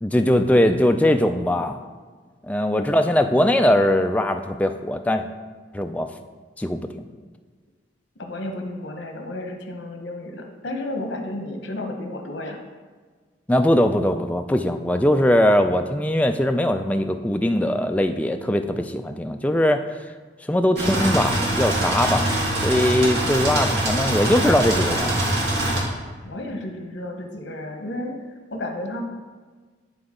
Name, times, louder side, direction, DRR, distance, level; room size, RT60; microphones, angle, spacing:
voice 1, 0.0-1.8 2.4-5.2 5.7-6.1 6.6-7.1 13.5-19.8 20.5-22.3 22.6-25.2, left 1 dB, 10° left, 6 dB, 0.3 m, -20 dB
voice 2, 8.2-12.6 26.2-28.2 28.5-29.0, left 1 dB, 85° left, 3 dB, 0.9 m, -32 dB
sound 1, 20.8-25.8, right 1 dB, 75° right, 2.0 m, -23 dB
10.5 x 3.9 x 3.7 m, 1.5 s
head